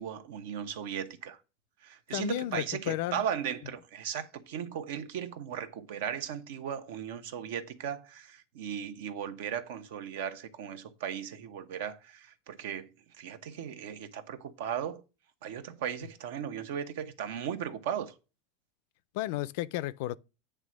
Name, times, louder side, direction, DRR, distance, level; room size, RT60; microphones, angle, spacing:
voice 1, 0.0-1.4 1.8-15.0 15.4-18.1, right 8 dB, 75° right, 1.0 m, -37 dB
voice 2, 2.1-3.2 19.1-20.2, left 15 dB, 60° left, 0.4 m, -33 dB
8.9 x 3.4 x 6.2 m
supercardioid pair, 155°, 0 cm